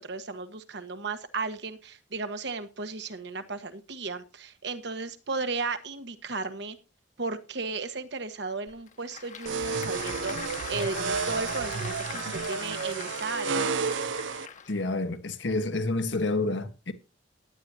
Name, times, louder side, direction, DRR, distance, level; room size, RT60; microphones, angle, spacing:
voice 1, 0.0-6.8 7.2-13.7, right 3 dB, 65° right, 1.3 m, -35 dB
Applause / Crowd, 8.7-14.8, left 6 dB, 40° left, 1.0 m, -40 dB
sound 1, 9.5-14.5, right 5 dB, 90° right, 0.5 m, -31 dB
voice 2, 14.7-16.9, left 2 dB, 80° left, 1.4 m, -29 dB
16.0 x 9.9 x 2.8 m
head